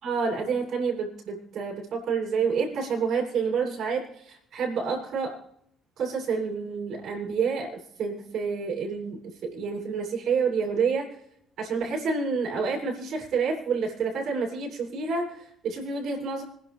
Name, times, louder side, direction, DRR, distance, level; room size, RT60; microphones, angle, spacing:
voice 1, 0.0-5.4 6.0-11.1 11.6-16.4, right 5 dB, 60° right, -2 dB, 7.3 m, -28 dB
27.0 x 11.0 x 3.6 m, 0.70 s
hypercardioid pair, 55°, 0 cm